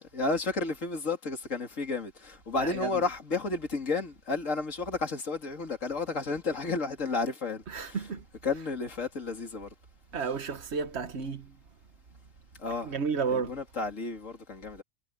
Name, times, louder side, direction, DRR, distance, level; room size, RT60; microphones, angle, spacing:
voice 1, 0.1-8.0 8.4-9.7 12.6-12.9 13.3-14.8, left 3 dB, 70° left, 3.2 m, -32 dB
voice 2, 2.6-3.0 7.7-8.6 10.1-11.5 12.7-13.6, right 5 dB, 55° right, 1.4 m, -33 dB
omnidirectional pair, 1.4 m